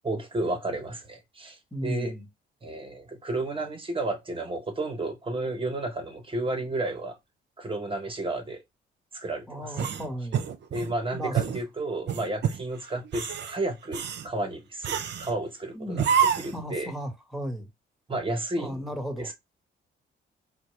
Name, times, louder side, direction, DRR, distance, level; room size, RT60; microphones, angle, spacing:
voice 1, 0.0-2.1 2.6-7.2 7.6-8.6 9.1-9.8 10.7-16.0 16.4-16.9 18.1-18.8 19.2-19.3, right 2 dB, 25° right, 1.2 m, -32 dB
voice 2, 1.7-2.3 9.5-10.4 11.1-11.4 15.7-16.0 16.5-17.7 18.6-19.3, equal, ahead, 1.5 m, -35 dB
sound 1, 9.7-10.9 11.3-11.6 12.1-12.6 13.0-13.5 13.9-14.3 14.8-15.3 16.0-16.6, right 8 dB, 60° right, 0.7 m, -27 dB
4.4 x 2.3 x 3.2 m
cardioid pair, 90°, 20 cm